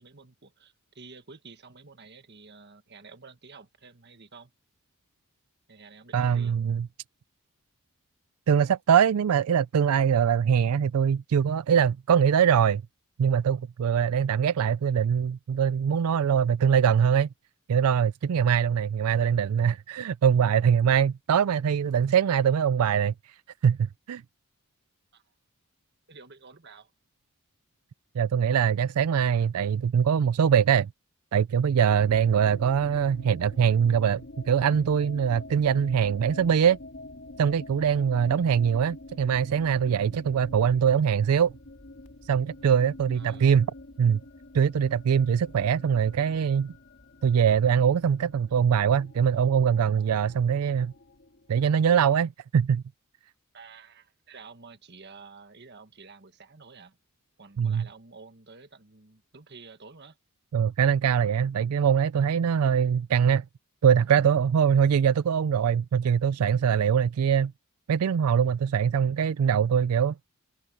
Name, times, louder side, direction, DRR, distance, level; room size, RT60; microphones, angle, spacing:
voice 1, 0.0-4.5 5.7-6.6 25.1-25.2 26.1-26.9 43.1-43.5 53.5-57.0 57.4-60.2, right 4 dB, 50° right, 1.5 m, -50 dB
voice 2, 6.1-6.9 8.5-12.8 13.2-17.3 17.7-23.1 23.6-24.2 28.2-30.9 31.3-34.2 34.5-36.8 37.4-41.5 42.3-43.7 44.0-44.2 44.5-46.7 47.2-50.9 51.5-52.8 57.6-57.9 60.5-63.4 63.8-67.5 67.9-70.1, right 7 dB, 85° right, 0.4 m, -23 dB
sound 1, 31.9-51.7, left 2 dB, 55° left, 2.5 m, -47 dB
head